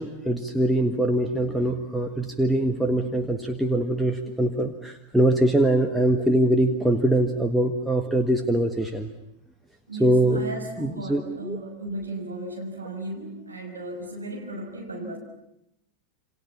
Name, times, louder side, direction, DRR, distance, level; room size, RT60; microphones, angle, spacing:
voice 1, 0.0-9.1 10.0-10.4 10.8-11.6, right 1 dB, ahead, 3 dB, 1.6 m, -23 dB
voice 2, 9.9-15.2, right 1 dB, 80° right, 1 dB, 6.2 m, -35 dB
28.5 x 26.0 x 7.3 m, 0.83 s
figure-of-eight pair, 90°, 0 cm